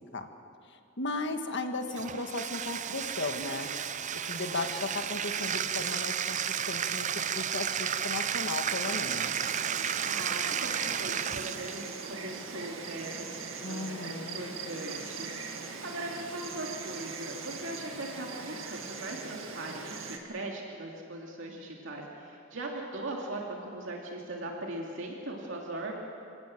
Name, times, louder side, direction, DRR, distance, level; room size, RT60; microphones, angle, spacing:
voice 1, 0.7-3.7 4.3-6.4 6.7-9.4 13.6-14.5, left 2 dB, 60° left, 6 dB, 1.6 m, -36 dB
Bathtub (filling or washing), 1.9-11.9, right 8 dB, 40° right, 0.6 m, -33 dB
Insect, 8.8-20.2, right 4 dB, 85° right, 2.1 m, -41 dB
voice 2, 10.1-26.0, right 2 dB, 70° right, -1 dB, 2.7 m, -40 dB
28.5 x 17.0 x 7.7 m, 2.5 s
head